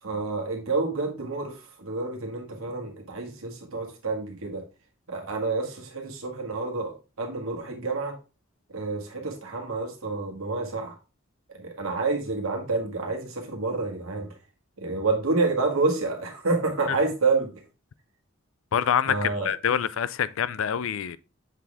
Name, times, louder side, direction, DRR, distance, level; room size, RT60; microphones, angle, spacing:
voice 1, 0.0-4.6 5.1-8.2 8.7-11.0 11.5-14.3 14.8-17.5 19.1-19.5, right 3 dB, 85° right, 1.8 m, -28 dB
voice 2, 18.7-21.2, left 8 dB, 70° left, 0.4 m, -26 dB
7.3 x 4.1 x 3.5 m
head